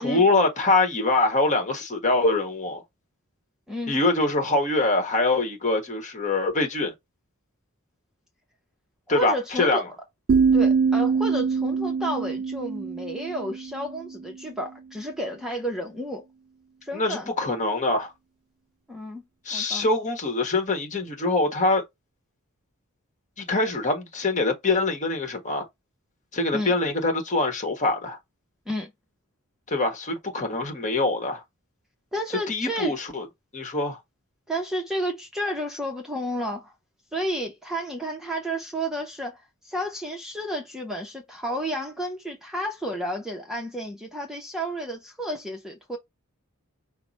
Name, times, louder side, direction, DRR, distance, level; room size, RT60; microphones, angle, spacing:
voice 1, 0.0-2.8 3.9-6.9 9.1-9.8 16.9-18.1 19.4-21.8 23.4-25.6 26.3-28.2 29.7-31.4 32.5-33.3 33.5-34.0, left 2 dB, 35° left, 1.4 m, -24 dB
voice 2, 9.1-9.8 10.5-16.2 16.8-17.3 18.9-19.2 19.5-19.9 26.5-26.7 28.7-28.9 32.1-32.9 34.5-36.7 37.1-46.0, equal, ahead, 0.8 m, -31 dB
sound 1, 10.3-14.2, right 5 dB, 40° right, 0.3 m, -23 dB
5.8 x 2.2 x 4.1 m
head